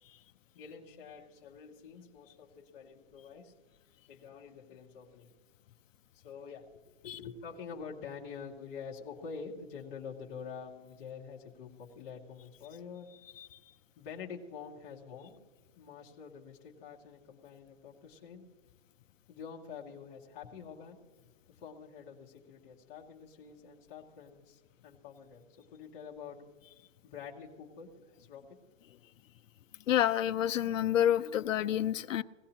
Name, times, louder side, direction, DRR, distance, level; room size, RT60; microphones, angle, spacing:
voice 1, 0.5-3.5 4.1-5.3 6.1-13.1 14.0-15.4 15.8-18.5 19.3-21.0 21.5-26.4 27.0-28.4, left 6 dB, 10° left, 0.8 m, -47 dB
voice 2, 29.9-32.2, left 11 dB, 80° left, 0.6 m, -28 dB
21.0 x 17.0 x 2.9 m
hypercardioid pair, 175°, 38 cm